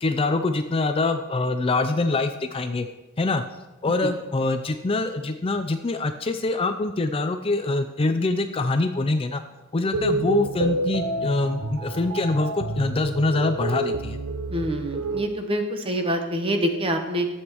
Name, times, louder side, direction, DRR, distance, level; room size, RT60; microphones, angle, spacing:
voice 1, 0.0-2.9 3.2-3.4 3.8-9.4 9.7-14.2, left 2 dB, 25° left, 8 dB, 0.4 m, -24 dB
sound 1, 9.9-15.3, right 2 dB, 70° right, 0.8 m, -28 dB
voice 2, 14.5-17.3, equal, 25° right, 5 dB, 1.0 m, -26 dB
12.5 x 8.0 x 3.0 m, 1.1 s
head